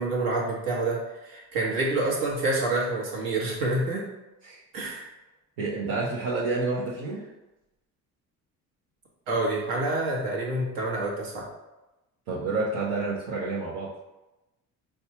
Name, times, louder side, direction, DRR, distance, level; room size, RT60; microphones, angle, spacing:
voice 1, 0.0-4.0 4.7-5.1 9.3-11.5, right 2 dB, 70° right, -3 dB, 1.2 m, -27 dB
voice 2, 5.6-7.2 12.3-13.9, right 3 dB, 85° right, -8 dB, 0.8 m, -29 dB
4.1 x 2.3 x 2.9 m, 1.0 s
supercardioid pair, 65°, 36 cm